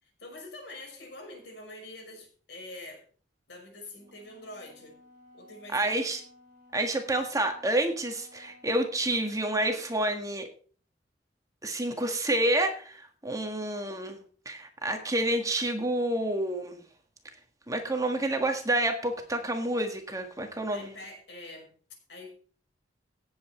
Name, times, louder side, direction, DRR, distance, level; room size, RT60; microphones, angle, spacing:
voice 1, 0.0-3.0 3.5-5.0 5.3-6.0 20.7-21.7 22.1-22.3, left 2 dB, 65° left, 2 dB, 5.7 m, -45 dB
Wind instrument woodwind instrument, 3.9-10.2, left 1 dB, 50° right, 7.8 m, -57 dB
voice 2, 5.7-6.2 6.7-10.5 11.6-14.2 14.4-16.8 17.7-20.9, right 1 dB, 20° right, 5 dB, 1.6 m, -29 dB
17.0 x 8.0 x 4.4 m, 0.43 s
head